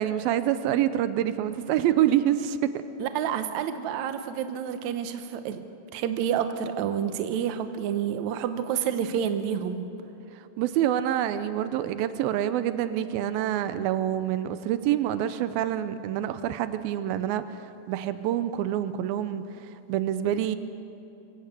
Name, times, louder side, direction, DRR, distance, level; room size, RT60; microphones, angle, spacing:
voice 1, 0.0-2.7 10.3-20.6, right 11 dB, 90° right, 12 dB, 2.5 m, -27 dB
voice 2, 3.0-5.6 5.9-9.8, right 8 dB, 65° right, 9 dB, 2.0 m, -29 dB
24.0 x 16.0 x 8.2 m, 2.9 s
omnidirectional pair, 4.2 m